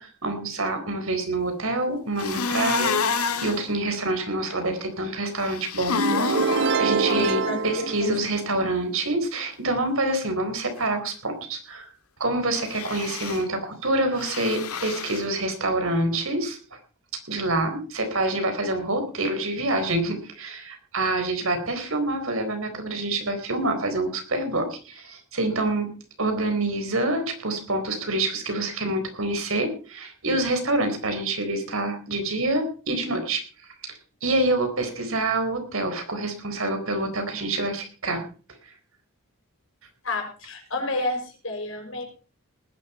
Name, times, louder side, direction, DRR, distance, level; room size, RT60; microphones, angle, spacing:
voice 1, 0.0-11.9 12.2-16.6 17.3-25.9 26.2-33.4 33.8-38.2, right 2 dB, 70° right, 7 dB, 4.2 m, -27 dB
sound 1, 2.2-3.6 5.4-6.8 12.7-13.4 14.2-15.2, left 5 dB, 85° left, 1.8 m, -28 dB
sound 2, 6.0-8.8, right 4 dB, 55° right, 0.6 m, -25 dB
voice 2, 7.1-8.2 40.0-42.0, left 2 dB, 65° left, 3 dB, 6.0 m, -30 dB
19.5 x 11.0 x 4.3 m, 0.37 s
head